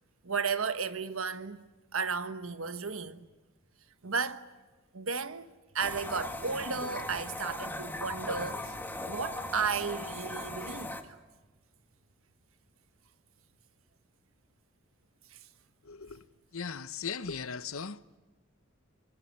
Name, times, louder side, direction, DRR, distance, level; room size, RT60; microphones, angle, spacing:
voice 1, 0.2-1.6 1.9-3.2 4.0-4.4 4.9-5.5 5.7-8.8 9.0-10.9, right 5 dB, 70° right, 1.4 m, -33 dB
sound 1, 5.8-11.0, left 1 dB, 10° left, 1.9 m, -39 dB
voice 2, 15.8-16.2 16.5-18.0, left 5 dB, 75° left, 1.0 m, -38 dB
24.0 x 21.5 x 9.9 m
head